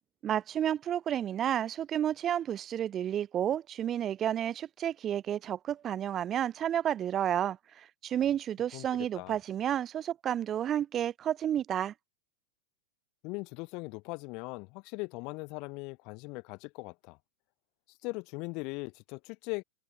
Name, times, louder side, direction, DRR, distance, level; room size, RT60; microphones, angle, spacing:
voice 1, 0.2-11.9, right 10 dB, 25° right, 0.3 m, -31 dB
voice 2, 8.7-9.4 13.2-17.2 18.0-19.6, left 28 dB, 45° left, 0.7 m, -40 dB
figure-of-eight pair, 90°, 0 cm